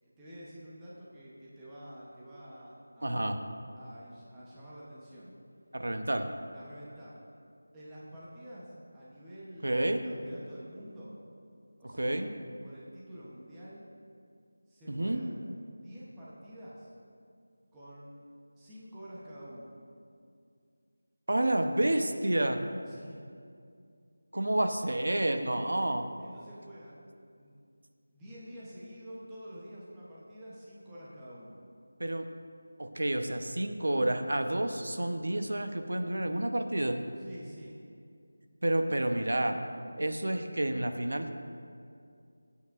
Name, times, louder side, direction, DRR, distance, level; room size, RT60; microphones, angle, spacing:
voice 1, 0.0-5.3 6.5-7.2 7.7-11.2 11.8-12.2 12.6-13.9 14.7-16.9 17.7-18.2 18.6-19.7 22.9-23.2 26.2-27.6 28.1-31.6 37.2-37.8, equal, 5° right, -9 dB, 0.9 m, -48 dB
voice 2, 3.0-3.4 5.7-6.3 9.6-10.0 11.8-12.3 14.9-15.2 21.3-22.6 24.3-26.1 32.0-32.3 32.8-37.0 38.6-39.6 40.0-41.3, right 1 dB, 75° right, 6 dB, 0.9 m, -29 dB
22.0 x 8.5 x 2.5 m, 2.3 s
figure-of-eight pair, 180°, 0 cm